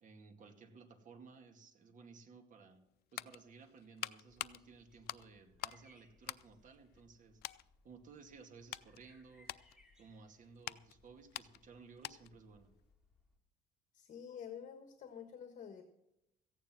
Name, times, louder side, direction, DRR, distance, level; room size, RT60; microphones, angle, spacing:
voice 1, 0.0-2.8 3.1-7.4 7.8-9.5 10.0-12.7, right 4 dB, 50° right, 5 dB, 2.3 m, -57 dB
sound 1, 2.7-5.9 6.2-7.1 7.4-7.7 8.2-12.5 12.7-12.9, left 16 dB, 70° left, 0.5 m, -47 dB
sound 2, 4.3-13.4, left 2 dB, 5° right, 2.8 m, -70 dB
voice 2, 13.9-15.8, left 8 dB, 50° left, 8 dB, 1.5 m, -49 dB
15.0 x 9.3 x 6.2 m, 0.87 s
cardioid pair, 110°, 17 cm